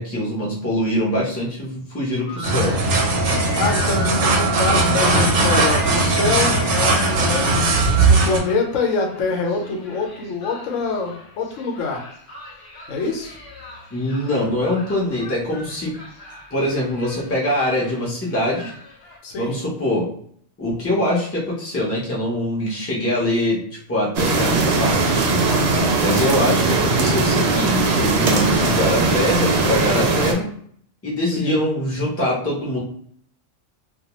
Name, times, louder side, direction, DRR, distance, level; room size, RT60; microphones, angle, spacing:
voice 1, 0.0-2.8 13.9-16.0 16.5-18.7 19.4-20.1 20.6-25.2 26.0-30.5 31.0-32.8, left 1 dB, 15° left, -4 dB, 0.5 m, -23 dB
sound 1, 2.2-19.2, right 3 dB, 60° left, 0.8 m, -36 dB
sound 2, 2.4-8.4, right 2 dB, 85° right, 1.0 m, -18 dB
voice 2, 3.5-12.0 12.9-13.4 19.2-19.6 25.4-26.0 31.3-31.6, left 3 dB, 85° left, 1 dB, 1.0 m, -25 dB
sound 3, 24.2-30.3, right 3 dB, 65° right, 0.7 m, -19 dB
2.2 x 2.2 x 2.9 m, 0.62 s
omnidirectional pair, 1.3 m